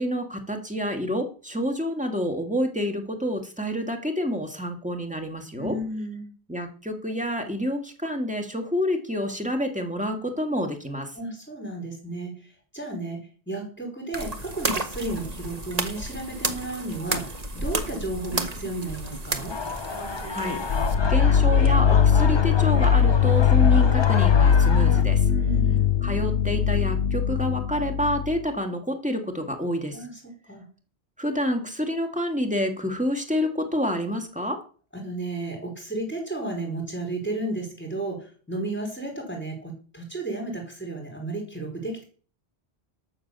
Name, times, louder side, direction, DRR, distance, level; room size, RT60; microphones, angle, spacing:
voice 1, 0.0-5.8 6.5-11.1 20.3-25.3 26.0-30.0 31.2-34.6, equal, 5° right, 4 dB, 2.2 m, -28 dB
voice 2, 5.6-6.3 11.2-12.4 12.7-13.2 13.5-19.5 25.2-25.8 29.9-30.1 30.5-30.6 34.9-42.0, right 2 dB, 10° left, 2 dB, 4.6 m, -33 dB
sound 1, 14.1-20.9, right 2 dB, 40° right, 1.4 m, -32 dB
sound 2, 19.5-25.0, left 4 dB, 30° left, 0.6 m, -32 dB
sound 3, 20.7-28.4, left 8 dB, 75° left, 1.0 m, -20 dB
12.0 x 6.8 x 7.0 m, 0.40 s
omnidirectional pair, 1.1 m